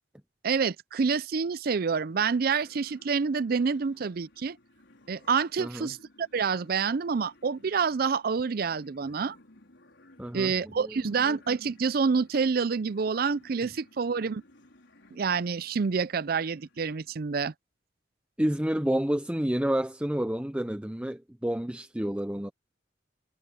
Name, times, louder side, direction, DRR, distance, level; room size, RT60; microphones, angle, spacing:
voice 1, 0.4-4.6 5.1-9.4 10.3-14.4 15.1-17.5, right 5 dB, 55° right, 0.5 m, -27 dB
sound 1, 1.8-17.1, left 2 dB, 80° left, 4.9 m, -59 dB
voice 2, 10.2-11.1 18.4-22.5, right 1 dB, 5° right, 0.5 m, -29 dB
head